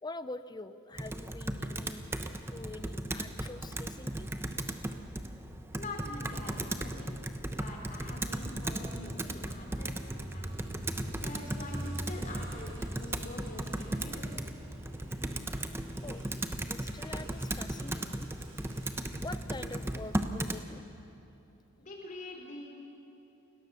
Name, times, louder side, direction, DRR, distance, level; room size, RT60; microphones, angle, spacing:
voice 1, 0.0-2.1 2.5-4.5 16.0-16.2 16.7-18.3 19.2-20.9, left 2 dB, 20° left, 12 dB, 0.6 m, -45 dB
Computer keyboard, 1.0-20.6, right 1 dB, 10° right, 0.9 m, -36 dB
voice 2, 5.7-7.2 7.5-10.6 11.2-14.4 21.8-22.7, left 2 dB, 40° left, 0 dB, 4.2 m, -45 dB
sound 1, 9.9-19.1, right 2 dB, 70° right, 7.7 m, -58 dB
29.5 x 17.5 x 7.0 m, 3.0 s
head